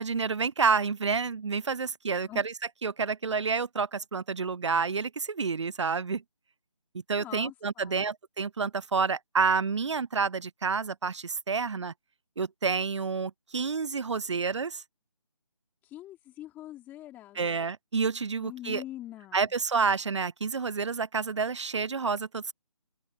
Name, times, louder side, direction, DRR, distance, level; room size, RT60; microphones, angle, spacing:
voice 1, 0.0-2.5 2.8-6.2 7.1-11.9 12.4-14.8 17.4-18.8 19.3-22.5, right 5 dB, 55° right, 0.5 m, -29 dB
voice 2, 7.2-8.1 15.8-17.4 18.4-19.5, left 14 dB, 10° left, 4.2 m, -44 dB
open air
figure-of-eight pair, 155°, 18 cm